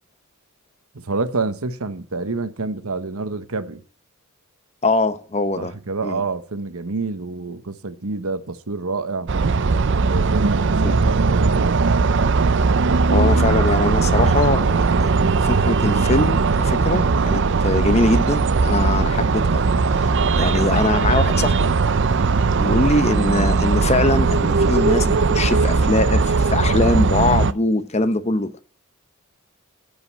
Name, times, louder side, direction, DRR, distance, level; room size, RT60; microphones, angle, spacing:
voice 1, 0.9-3.8 5.6-9.3 10.0-11.9 20.2-20.5, right 3 dB, 75° right, 1.1 m, -28 dB
voice 2, 4.8-5.7 6.0-6.2 10.8-11.0 13.1-15.1 15.4-19.6 20.0-20.1 20.4-21.8 22.6-28.6, left 2 dB, 30° left, 0.8 m, -22 dB
sound 1, 9.3-27.5, right 4 dB, 55° right, 0.5 m, -19 dB
15.5 x 5.3 x 7.3 m
head